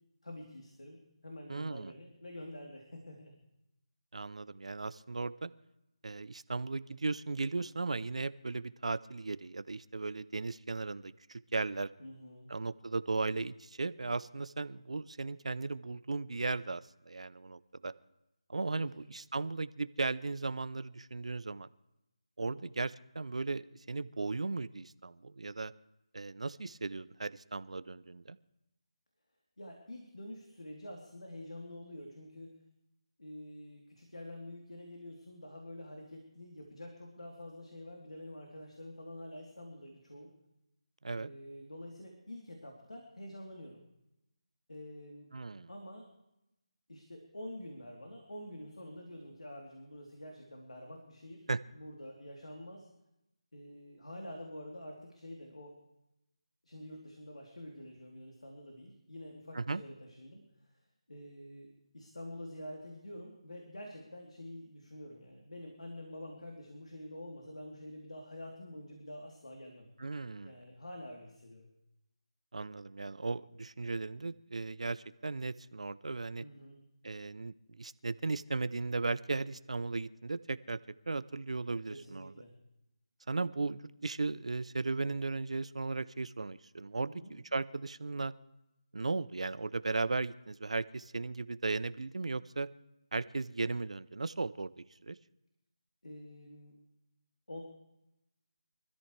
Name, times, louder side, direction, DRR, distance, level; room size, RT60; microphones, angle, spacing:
voice 1, 0.2-3.3 12.0-12.5 18.7-18.8 22.4-22.6 29.6-32.5 33.2-40.3 41.2-43.8 44.7-45.3 45.7-46.1 46.9-51.4 51.7-52.9 53.5-55.7 56.6-60.4 61.1-61.7 61.9-69.9 70.4-71.7 76.4-76.8 81.9-82.5 87.1-87.3 96.0-96.7 97.5-97.6, left 1 dB, 90° left, 0 dB, 3.5 m, -47 dB
voice 2, 1.5-1.9 4.1-5.5 6.0-11.9 12.5-17.9 18.5-21.7 22.4-25.7 26.1-28.4 41.0-41.3 45.3-45.7 51.5-51.6 59.5-59.8 70.0-70.6 72.5-76.4 77.0-80.8 81.1-82.3 83.3-88.3 88.9-92.7 93.1-95.2, right 3 dB, 70° right, 15 dB, 0.7 m, -36 dB
24.5 x 13.5 x 3.4 m, 0.88 s
figure-of-eight pair, 165°, 4 cm